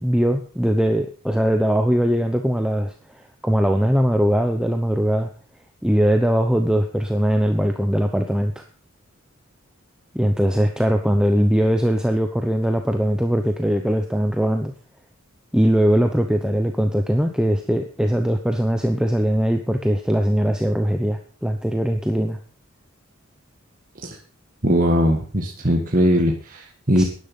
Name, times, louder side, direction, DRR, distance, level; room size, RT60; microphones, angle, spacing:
voice 1, 0.0-5.3 5.8-8.6 10.1-14.7 15.5-22.4 27.0-27.1, equal, 5° right, 5 dB, 0.9 m, -20 dB
voice 2, 24.6-27.0, equal, 40° right, -1 dB, 1.8 m, -20 dB
12.5 x 10.5 x 5.6 m, 0.40 s
head